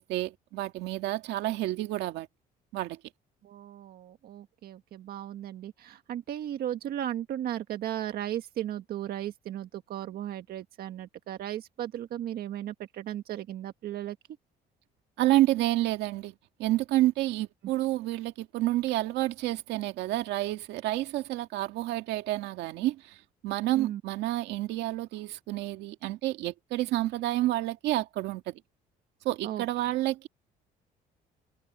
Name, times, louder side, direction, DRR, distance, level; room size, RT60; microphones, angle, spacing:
voice 1, 0.0-2.3 2.7-3.0 15.2-16.3 16.6-23.2 23.4-28.6 29.2-30.3, right 16 dB, 85° right, 2.1 m, -29 dB
voice 2, 3.4-14.2 23.8-24.0 29.4-29.6, right 11 dB, 65° right, 1.6 m, -36 dB
cardioid pair, 110°, 17 cm